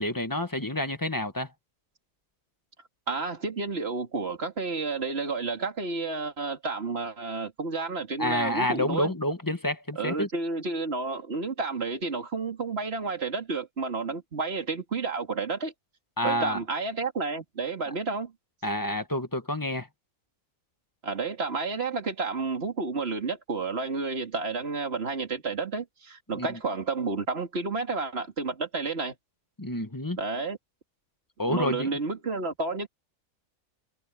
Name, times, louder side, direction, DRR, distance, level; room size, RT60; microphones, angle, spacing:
voice 1, 0.0-1.5 8.2-10.3 16.2-16.6 18.6-19.9 26.3-26.6 29.6-30.2 31.4-31.9, left 1 dB, 15° left, 1.3 m, -28 dB
voice 2, 3.1-9.1 10.0-15.7 16.2-18.3 21.0-29.1 30.2-30.6 31.5-32.9, right 4 dB, 45° right, 2.8 m, -31 dB
omnidirectional pair, 1.4 m